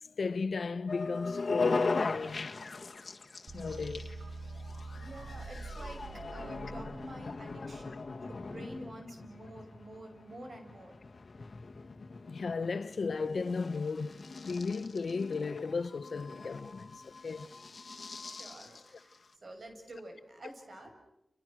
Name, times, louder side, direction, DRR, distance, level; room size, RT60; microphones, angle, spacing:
voice 1, 0.0-2.5 3.5-4.1 5.1-5.5 12.3-17.5, left 4 dB, 85° left, 1.1 m, -35 dB
sound 1, 0.9-19.3, left 3 dB, 65° left, 1.7 m, -40 dB
sound 2, 3.5-8.4, right 3 dB, 85° right, 1.7 m, -45 dB
voice 2, 4.9-6.0 6.3-10.9 18.2-20.9, right 1 dB, 65° right, 6.6 m, -48 dB
30.0 x 29.5 x 6.3 m
wide cardioid pair, 85°, 0 cm